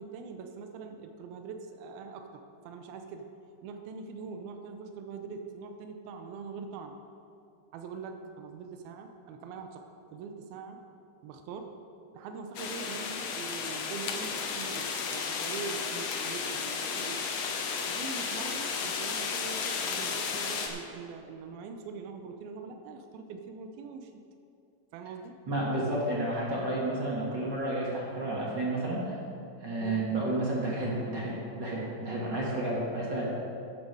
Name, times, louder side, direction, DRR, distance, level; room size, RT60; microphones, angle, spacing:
voice 1, 0.0-3.3 3.6-7.0 7.7-10.8 11.2-11.8 12.1-17.2 17.8-24.2 24.9-25.4 29.8-30.1, right 5 dB, 85° right, 5 dB, 2.7 m, -43 dB
sound 1, 12.6-20.7, left 5 dB, 70° left, 1.6 m, -33 dB
voice 2, 25.5-29.1 29.6-33.3, right 1 dB, 40° right, -5 dB, 1.7 m, -31 dB
12.0 x 9.3 x 4.8 m, 2.5 s
omnidirectional pair, 4.3 m